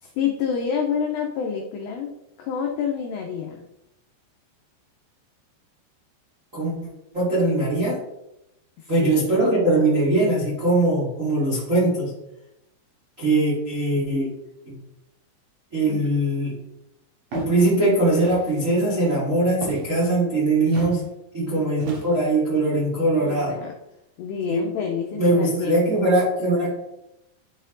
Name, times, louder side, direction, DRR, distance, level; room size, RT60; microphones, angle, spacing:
voice 1, 0.0-2.1 2.4-3.7 8.8-9.3 15.9-16.1 20.7-21.1 21.5-21.6 23.2-23.7 24.2-26.0, left 7 dB, 85° left, 2 dB, 2.4 m, -28 dB
voice 2, 7.1-8.0 8.9-12.1 13.2-14.3 14.6-14.8 15.7-16.6 17.3-21.0 21.3-23.6 24.5-24.6 25.1-26.7, right 2 dB, 30° right, -7 dB, 1.5 m, -21 dB
Walk footsteps, 17.3-17.6 18.2-18.6 19.6-19.9 20.7-21.0 21.8-22.3, right 3 dB, 55° right, 2.9 m, -34 dB
11.5 x 4.3 x 3.9 m, 0.88 s
omnidirectional pair, 5.8 m